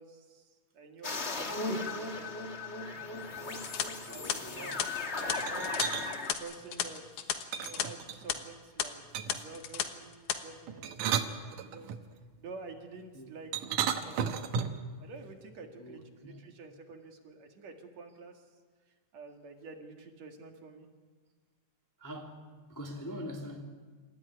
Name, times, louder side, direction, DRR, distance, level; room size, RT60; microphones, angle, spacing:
voice 1, 0.0-2.4 4.1-7.1 7.6-9.0 9.3-12.0 12.4-14.2 15.0-18.5 19.1-20.9, right 4 dB, 60° right, 3.3 m, -49 dB
sound 1, 1.0-6.3, left 3 dB, 30° left, 1.2 m, -37 dB
sound 2, 3.6-7.9 8.1-8.3 8.8-8.9 9.3-9.9 10.1-10.4, left 10 dB, 75° left, 2.7 m, -34 dB
voice 2, 4.1-4.7 13.1-13.3 15.8-16.4 22.0-23.6, equal, 5° left, 1.9 m, -43 dB
sound 3, 5.4-6.1 7.5-8.4 9.1-9.5 10.7-12.0 13.5-14.9, right 8 dB, 90° right, 2.7 m, -33 dB
27.5 x 14.5 x 9.9 m
omnidirectional pair, 3.5 m